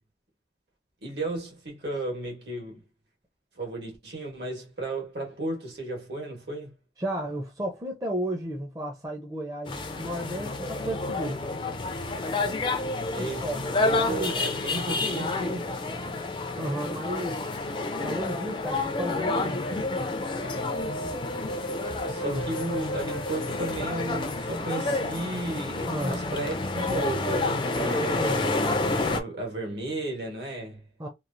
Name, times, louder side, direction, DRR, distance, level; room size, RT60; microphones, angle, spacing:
voice 1, 1.0-2.8 3.5-6.7 13.1-13.5 13.8-15.7 22.0-28.6 29.0-30.8, right 2 dB, 70° right, 1.5 m, -34 dB
voice 2, 7.0-11.4 13.2-13.7 14.0-14.4 16.6-17.4 18.0-19.6 22.2-22.4 25.9-26.1 28.2-28.4 31.0-31.1, right 1 dB, 20° right, 0.5 m, -33 dB
sound 1, 9.7-29.2, left 2 dB, 25° left, 0.4 m, -29 dB
sound 2, 20.4-24.6, right 2 dB, 85° left, 0.7 m, -37 dB
3.0 x 2.4 x 2.6 m
head